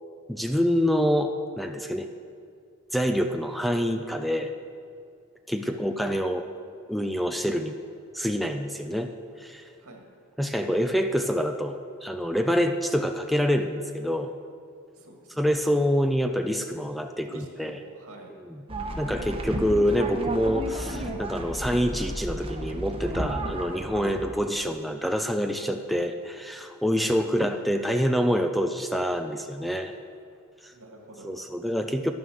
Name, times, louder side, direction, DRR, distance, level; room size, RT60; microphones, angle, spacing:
voice 1, 0.3-2.1 2.9-4.5 5.5-6.4 6.9-7.7 8.1-9.1 9.4-9.7 10.4-14.3 15.4-17.8 18.4-18.6 19.0-30.0 30.6-30.7 31.2-32.1, equal, ahead, 6 dB, 0.4 m, -26 dB
voice 2, 14.9-15.5 17.3-18.3 26.9-27.4 30.7-31.4, right 2 dB, 80° right, 2 dB, 1.9 m, -48 dB
sound 1, 18.7-24.3, right 1 dB, 25° right, 0.9 m, -33 dB
11.5 x 9.4 x 6.3 m, 2.3 s
head